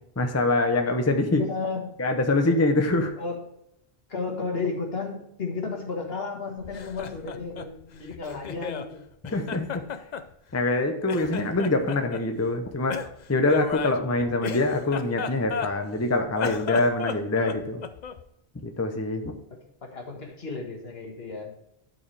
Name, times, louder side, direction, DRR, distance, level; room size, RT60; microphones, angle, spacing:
voice 1, 0.2-1.4 2.0-3.1 9.3-9.7 10.5-13.0 13.3-17.8 18.6-19.3, left 2 dB, 15° left, 5 dB, 0.7 m, -24 dB
voice 2, 1.3-2.0 3.2-3.4 4.1-9.0 19.5-21.5, left 4 dB, 70° left, 1 dB, 1.8 m, -33 dB
Laughter, 6.6-8.9 9.2-10.8 11.1-12.2 12.9-16.0 16.3-18.3, left 7 dB, 50° left, 0.6 m, -34 dB
12.0 x 4.7 x 3.3 m, 0.80 s
omnidirectional pair, 1.1 m